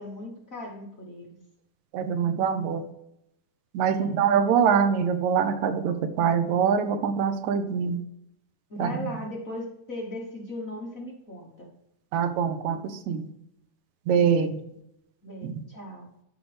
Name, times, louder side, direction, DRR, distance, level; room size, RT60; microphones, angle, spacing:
voice 1, 0.0-1.4 3.9-4.2 8.7-11.7 15.2-16.1, left 1 dB, 45° left, -2 dB, 1.1 m, -38 dB
voice 2, 1.9-2.8 3.7-8.0 8.8-9.0 12.1-13.3 14.1-14.6 15.4-15.5, right 7 dB, 75° right, 8 dB, 2.2 m, -24 dB
12.5 x 5.0 x 3.4 m, 0.82 s
omnidirectional pair, 3.5 m